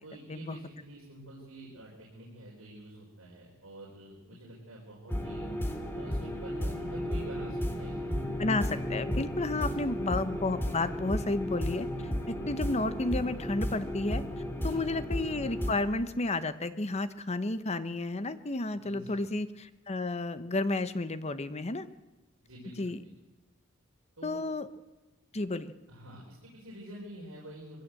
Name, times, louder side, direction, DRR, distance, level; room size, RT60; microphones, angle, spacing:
voice 1, 0.0-5.5 5.9-8.1 9.7-9.9 14.6-14.8 18.8-19.2 22.4-23.1 24.2-24.4 25.9-27.8, right 1 dB, 75° right, -3 dB, 4.7 m, -47 dB
sound 1, 5.1-15.7, equal, 10° left, 2.4 m, -34 dB
voice 2, 8.4-11.9 12.3-14.2 14.6-21.9 22.8-23.0 24.2-24.7 25.3-25.7, left 2 dB, 30° left, 12 dB, 0.9 m, -32 dB
22.0 x 16.0 x 7.7 m, 1.1 s
head